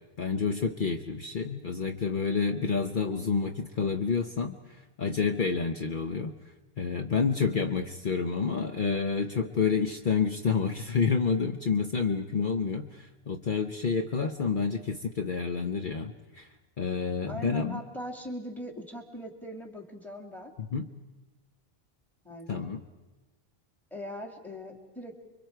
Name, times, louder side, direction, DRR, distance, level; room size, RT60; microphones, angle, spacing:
voice 1, 0.2-6.3 6.8-16.5 16.8-17.8 20.6-20.9 22.5-22.8, left 5 dB, 55° left, 5 dB, 1.0 m, -29 dB
voice 2, 17.3-20.5 22.2-22.6 23.9-25.1, equal, ahead, 3 dB, 2.5 m, -40 dB
30.0 x 23.5 x 4.6 m, 1.2 s
omnidirectional pair, 1.0 m